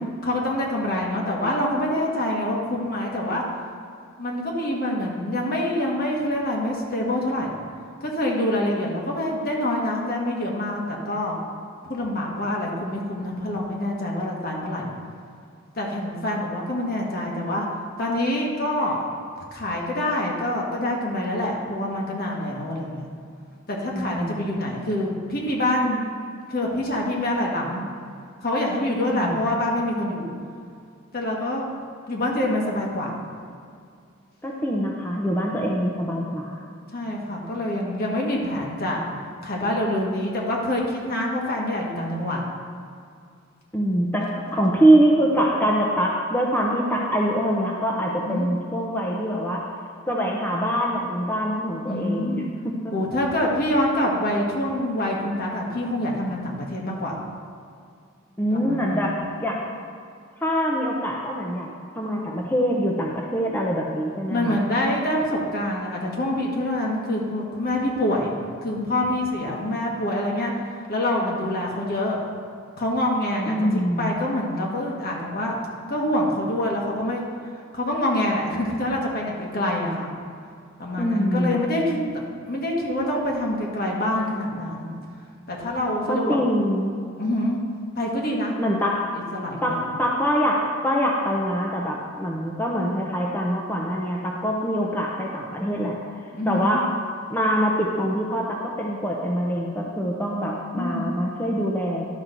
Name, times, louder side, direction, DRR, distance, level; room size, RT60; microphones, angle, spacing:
voice 1, 0.2-3.4 4.2-7.6 8.0-11.4 11.8-14.9 15.7-17.7 18.0-19.0 19.5-23.0 23.7-26.0 26.5-27.8 28.4-30.3 31.1-31.7 32.1-33.2 36.9-39.0 39.4-42.4 44.5-44.8 48.2-48.5 51.8-52.5 52.9-57.2 58.5-59.0 64.3-68.3 68.6-70.5 70.9-72.2 72.8-73.5 74.0-75.5 75.9-77.3 77.7-80.1 80.8-82.2 82.5-85.0 85.5-86.4 87.2-87.6 87.9-88.8 89.3-89.8 96.3-96.8 100.8-101.1, left 1 dB, 50° left, -2 dB, 1.5 m, -26 dB
voice 2, 23.9-24.7 29.0-29.5 34.4-36.6 43.7-44.3 44.5-49.6 50.1-52.9 58.4-59.6 60.4-61.7 61.9-64.6 73.5-74.2 81.0-81.6 86.1-87.0 88.6-89.0 89.6-96.0 96.5-96.8 97.3-102.1, equal, 10° left, -2 dB, 0.7 m, -24 dB
11.5 x 6.0 x 3.9 m, 2.3 s
head